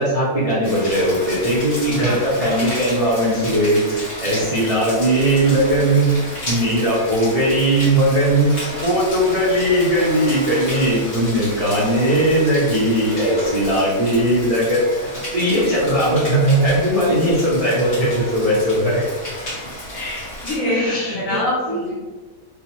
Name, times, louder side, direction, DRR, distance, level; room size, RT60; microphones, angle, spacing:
voice 1, 0.0-19.0 20.7-21.4 21.7-21.8, right 1 dB, 60° right, -9 dB, 0.3 m, -19 dB
Rain, 0.6-20.6, left 1 dB, 35° left, 0.9 m, -32 dB
voice 2, 1.8-2.2 4.3-4.5 19.9-22.0, left 1 dB, 60° left, -6 dB, 1.2 m, -26 dB
2.8 x 2.1 x 2.9 m, 1.4 s
omnidirectional pair, 1.7 m